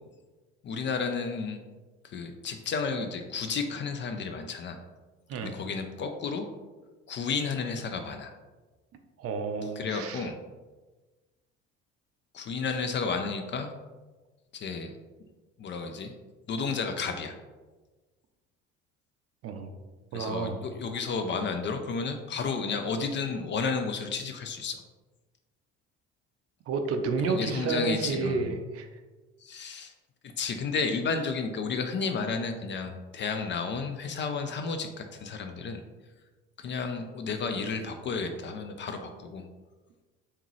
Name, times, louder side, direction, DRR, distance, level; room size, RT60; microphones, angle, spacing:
voice 1, 0.6-1.6 2.1-4.8 5.4-6.5 7.1-8.3 9.8-10.4 12.3-13.7 14.5-14.9 15.6-16.1 16.5-17.3 20.1-24.8 27.2-28.5 29.4-29.9 30.4-35.8 36.6-39.4, left 5 dB, 35° left, 6 dB, 0.4 m, -32 dB
voice 2, 9.2-10.3 19.4-19.7 20.1-20.6 26.7-29.0, right 4 dB, 40° right, 6 dB, 0.5 m, -31 dB
3.6 x 2.9 x 3.0 m, 1.3 s
hypercardioid pair, 55°, 35 cm